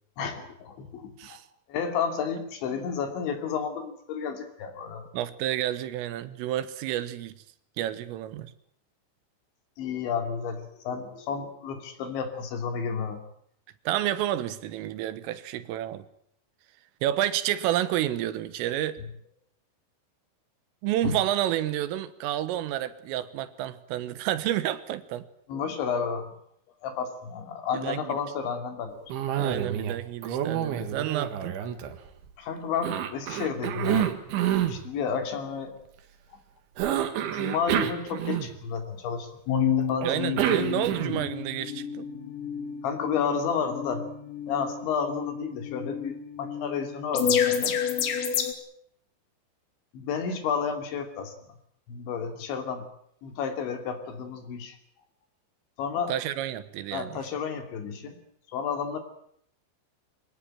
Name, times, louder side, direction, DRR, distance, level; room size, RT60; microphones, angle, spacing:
voice 1, 0.2-1.4 1.7-5.0 9.8-13.2 21.0-21.1 25.5-26.3 26.8-29.1 32.4-34.1 34.7-35.8 37.2-40.1 42.8-44.1 44.5-47.8 49.9-51.3 51.9-52.9 53.2-54.8 55.8-56.1 56.9-58.2 58.5-59.0, left 6 dB, 65° left, 6 dB, 4.9 m, -31 dB
voice 2, 5.1-7.4 7.8-8.5 13.9-16.1 17.0-19.0 20.8-25.3 27.7-28.2 29.4-31.6 40.0-42.1 56.1-57.2, right 13 dB, 90° right, 13 dB, 3.8 m, -30 dB
Cough, 29.1-30.0 30.2-32.3 32.8-34.8 36.8-38.8 40.0-41.3, right 10 dB, 70° right, 4.1 m, -28 dB
sound 1, 39.5-48.5, left 7 dB, 90° left, 4.9 m, -30 dB
24.0 x 18.0 x 9.0 m, 0.69 s
omnidirectional pair, 5.8 m